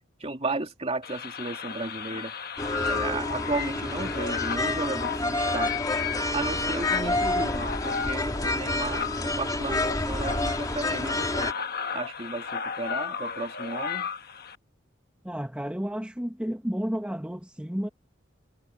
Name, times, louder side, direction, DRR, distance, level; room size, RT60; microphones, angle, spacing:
voice 1, 0.2-2.3 2.9-5.7 6.3-11.5 11.9-14.1, right 3 dB, 30° right, 2.7 m, -34 dB
sound 1, 1.0-14.6, left 6 dB, 50° left, 1.3 m, -34 dB
sound 2, 2.6-11.5, left 2 dB, 20° left, 2.8 m, -29 dB
voice 2, 15.2-17.9, equal, 5° right, 1.5 m, -31 dB
head